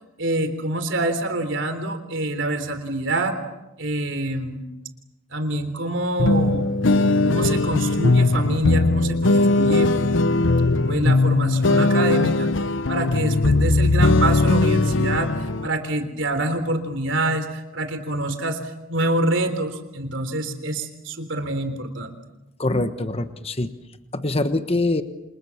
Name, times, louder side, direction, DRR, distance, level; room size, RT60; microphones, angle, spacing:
voice 1, 0.2-3.4 3.8-4.7 5.3-6.7 7.3-9.9 10.9-12.5 12.9-15.3 15.6-18.6 18.9-22.1, right 1 dB, 65° right, 9 dB, 3.6 m, -26 dB
sound 1, 6.2-15.7, left 2 dB, 65° left, 0.9 m, -19 dB
voice 2, 22.6-23.7 24.1-25.0, left 2 dB, 30° left, 9 dB, 1.2 m, -23 dB
29.0 x 27.5 x 7.3 m, 0.99 s
head